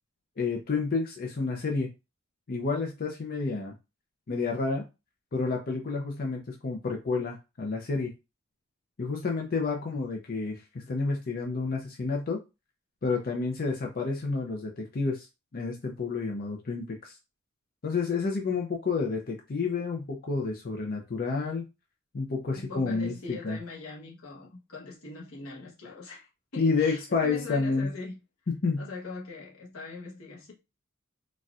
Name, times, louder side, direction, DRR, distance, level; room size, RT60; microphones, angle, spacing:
voice 1, 0.4-1.9 2.5-3.7 4.3-4.9 5.3-8.1 9.0-12.4 13.0-15.3 15.5-17.1 17.8-21.6 22.1-23.6 26.6-27.9 28.5-28.9, left 4 dB, 45° left, 0.5 m, -30 dB
voice 2, 22.5-28.2 28.8-30.5, left 3 dB, 85° left, 1.0 m, -42 dB
4.0 x 2.4 x 2.4 m
head